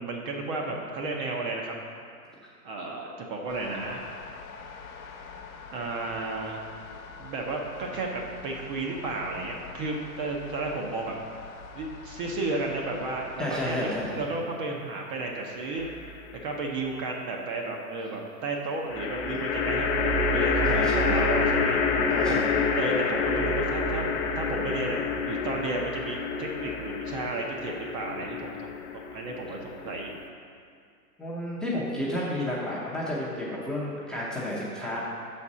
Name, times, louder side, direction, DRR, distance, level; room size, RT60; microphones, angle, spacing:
voice 1, 0.0-1.7 2.6-4.0 5.7-6.6 7.2-11.2 11.7-13.8 14.1-15.9 16.4-21.8 22.3-22.5 22.8-24.1 24.4-30.1, right 2 dB, 35° right, 0 dB, 0.7 m, -33 dB
sound 1, 3.5-14.3, left 5 dB, 60° left, 1.0 m, -45 dB
voice 2, 13.4-14.2 19.3-19.4 20.7-21.3 22.1-22.6 31.2-35.0, left 1 dB, ahead, -8 dB, 0.7 m, -32 dB
sound 2, 15.8-16.4 18.9-30.3, left 4 dB, 45° left, 0.6 m, -28 dB
5.9 x 4.3 x 6.0 m, 2.3 s
hypercardioid pair, 125°, 48 cm